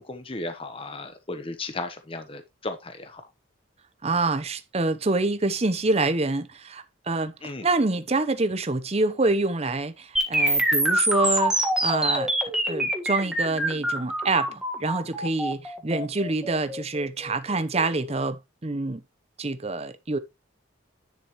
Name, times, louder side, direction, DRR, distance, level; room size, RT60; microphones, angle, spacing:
voice 1, 0.0-3.2 7.4-7.7, left 2 dB, 30° left, 0.9 m, -35 dB
voice 2, 4.0-12.3 12.6-19.0 19.4-20.2, right 3 dB, 30° right, 0.8 m, -26 dB
sound 1, 10.2-18.1, right 1 dB, 5° right, 1.6 m, -25 dB
10.5 x 5.9 x 3.1 m
head